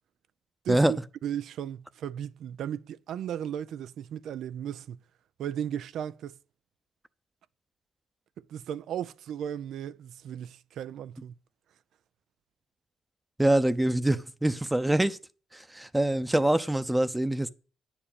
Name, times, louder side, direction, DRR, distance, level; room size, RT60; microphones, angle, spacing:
voice 1, 0.6-5.0 5.4-6.4 8.4-11.4, right 9 dB, 85° right, 0.5 m, -36 dB
voice 2, 13.4-15.2 15.5-17.5, right 1 dB, 10° right, 0.7 m, -25 dB
9.9 x 7.3 x 8.9 m
cardioid pair, 105°, 0 cm